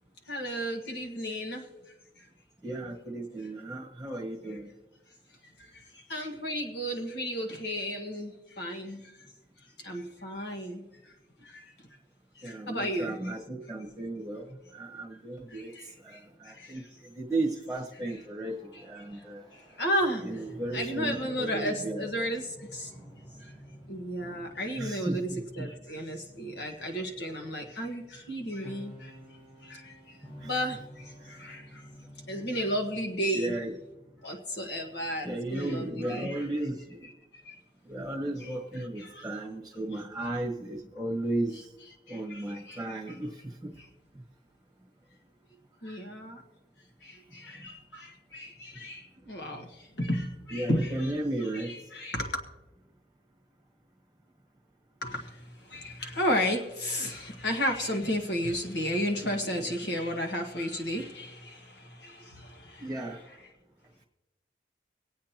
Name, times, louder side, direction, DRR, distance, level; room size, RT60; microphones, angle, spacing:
voice 1, 0.3-1.6 6.1-9.1 9.8-10.9 11.4-11.6 12.4-13.2 15.5-15.9 16.1-16.2 16.4-16.7 19.8-20.2 20.7-22.9 23.9-25.3 25.5-29.1 29.6-29.9 30.4-31.8 32.3-33.6 34.2-36.5 37.4-37.5 38.4-38.5 39.0-39.3 42.1-43.2 45.8-46.4 47.0-49.7 50.0-51.1 51.5-52.4 55.0-55.3 55.7-63.0, equal, 75° left, 4 dB, 1.6 m, -33 dB
voice 2, 2.6-4.7 12.4-15.7 16.0-19.4 20.2-22.3 24.8-25.7 30.4-30.5 33.3-33.7 35.2-37.1 37.8-41.7 42.1-43.7 47.5-47.7 50.5-51.8 62.8-63.2, right 1 dB, ahead, -1 dB, 1.4 m, -35 dB
sound 1, 17.8-34.2, equal, 35° left, 4.8 m, -51 dB
25.0 x 8.6 x 2.9 m, 1.0 s
head